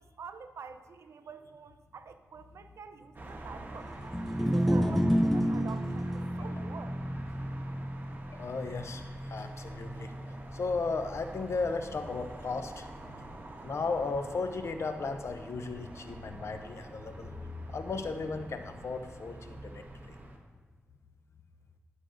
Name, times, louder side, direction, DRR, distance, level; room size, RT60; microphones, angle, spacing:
voice 1, 0.0-3.9 4.4-7.0, right 5 dB, 80° right, 9 dB, 0.5 m, -47 dB
sound 1, 3.1-20.4, right 1 dB, 45° right, 1.2 m, -47 dB
sound 2, 4.0-10.4, equal, 5° left, 0.5 m, -30 dB
voice 2, 8.3-10.1 10.5-12.9 13.6-17.3 17.7-20.2, left 4 dB, 70° left, 7 dB, 0.6 m, -35 dB
11.0 x 6.3 x 2.6 m, 1.4 s
cardioid pair, 50°, 5 cm